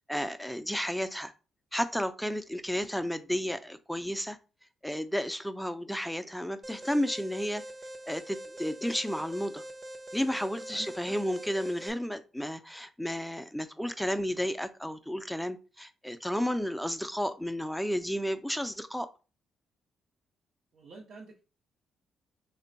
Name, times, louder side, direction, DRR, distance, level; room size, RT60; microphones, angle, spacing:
voice 1, 0.1-1.3 1.7-4.4 4.8-7.6 8.1-9.6 10.1-19.1, equal, ahead, 0.4 m, -32 dB
Alarm, 6.6-11.9, right 1 dB, 30° right, 0.7 m, -44 dB
voice 2, 10.7-11.2 20.7-21.4, right 3 dB, 65° right, 0.8 m, -48 dB
3.3 x 2.2 x 3.9 m
cardioid pair, 90°, 0 cm